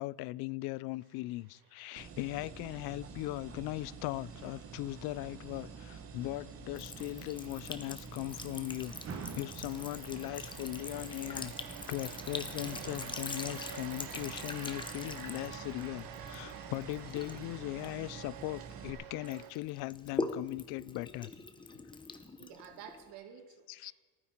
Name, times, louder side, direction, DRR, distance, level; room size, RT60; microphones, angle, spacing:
voice 1, 0.0-21.3 21.7-21.8 23.7-23.9, left 19 dB, 55° left, 0.5 m, -39 dB
sound 1, 1.2-19.5, right 9 dB, 50° right, 1.3 m, -50 dB
sound 2, 2.0-18.9, right 5 dB, 30° right, 1.5 m, -48 dB
Sink (filling or washing) / Trickle dribble, 6.7-18.9 19.2-23.1, left 3 dB, 10° left, 0.8 m, -44 dB
voice 2, 22.4-23.9, right 8 dB, 70° right, 2.4 m, -51 dB
29.5 x 9.8 x 4.5 m
cardioid pair, 155°, 45 cm